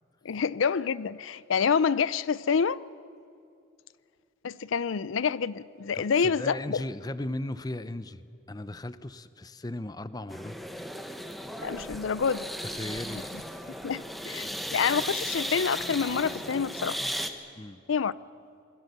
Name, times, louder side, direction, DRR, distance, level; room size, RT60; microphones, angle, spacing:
voice 1, 0.2-2.8 4.4-6.8 11.6-12.5 13.8-17.0 17.9-18.1, left 6 dB, 90° left, 0.5 m, -27 dB
voice 2, 5.9-10.9 12.6-13.3 17.6-17.8, left 1 dB, 20° left, 0.6 m, -37 dB
sound 1, 10.3-17.3, equal, ahead, 1.1 m, -36 dB
27.5 x 21.0 x 6.8 m
head